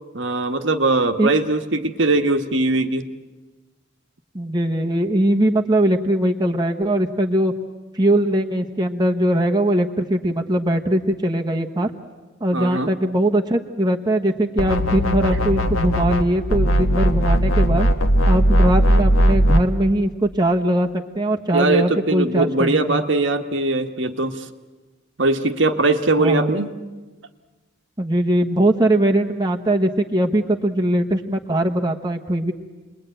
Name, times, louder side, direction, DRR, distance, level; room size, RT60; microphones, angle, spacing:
voice 1, 0.1-3.1 12.5-12.9 21.5-24.5 25.2-26.8, right 2 dB, 60° right, 6 dB, 1.4 m, -20 dB
voice 2, 4.3-7.5 7.9-11.9 12.4-17.9 18.3-20.9 21.1-23.0 26.2-26.5 28.0-32.5, right 1 dB, 20° right, 2 dB, 1.1 m, -20 dB
sound 1, 14.6-16.2 16.5-19.6, equal, 85° left, 1.9 m, -18 dB
29.5 x 21.5 x 9.1 m, 1.3 s
head